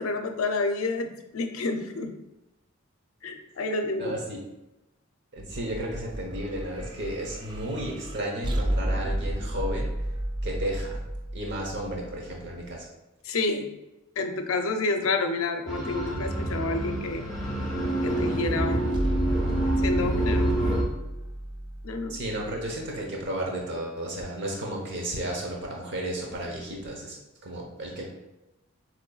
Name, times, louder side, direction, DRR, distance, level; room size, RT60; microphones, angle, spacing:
voice 1, 0.0-2.1 3.2-4.2 13.2-13.7 14.2-17.3 18.0-19.0 19.8-20.6 21.8-22.2, left 3 dB, 75° left, 6 dB, 0.5 m, -29 dB
voice 2, 4.0-4.4 5.3-9.9 10.4-11.0 11.3-12.9 22.1-28.0, right 1 dB, 55° right, -1 dB, 1.0 m, -33 dB
sound 1, 5.4-12.7 18.9-23.0, right 1 dB, 20° right, 0.4 m, -33 dB
sound 2, 15.7-20.8, right 1 dB, 5° right, 1.1 m, -27 dB
6.7 x 3.1 x 2.4 m, 0.98 s
head